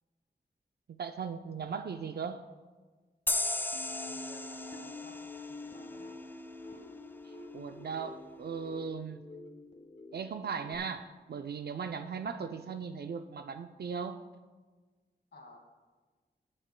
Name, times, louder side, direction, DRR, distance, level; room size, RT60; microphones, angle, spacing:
voice 1, 1.0-2.4 7.2-9.2 10.1-14.2, right 6 dB, 65° right, 8 dB, 0.4 m, -38 dB
sound 1, 3.3-6.6, left 2 dB, 10° left, 0.4 m, -36 dB
sound 2, 3.7-10.8, left 2 dB, 40° left, 1.2 m, -47 dB
voice 2, 3.9-6.1 15.3-15.6, left 1 dB, 75° left, 1 dB, 1.9 m, -54 dB
19.5 x 7.5 x 2.2 m, 1.4 s
wide cardioid pair, 70°, 18 cm